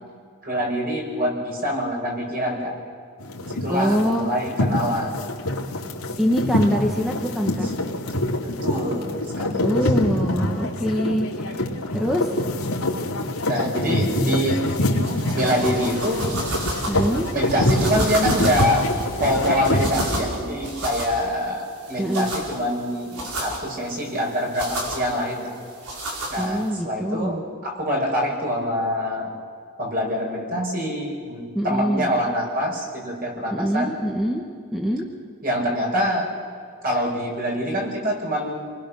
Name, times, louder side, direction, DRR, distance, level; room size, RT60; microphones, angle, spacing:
voice 1, 0.4-2.8 3.4-5.2 8.4-9.7 11.4-11.6 13.5-14.6 15.3-16.3 17.3-18.9 19.2-25.5 26.3-29.3 29.8-33.9 35.4-36.3 36.8-38.6, equal, 40° right, 0 dB, 5.9 m, -25 dB
sound 1, 3.2-19.9, left 1 dB, 80° left, 2.7 m, -25 dB
voice 2, 3.7-4.3 6.2-7.7 9.6-11.3 11.9-12.3 16.9-17.3 22.0-22.3 26.4-27.4 31.5-32.1 33.5-34.4 34.7-35.1, equal, ahead, 0 dB, 1.5 m, -24 dB
sound 2, 14.7-26.7, right 1 dB, 90° right, 5.2 m, -32 dB
29.5 x 20.0 x 6.6 m, 2.2 s
head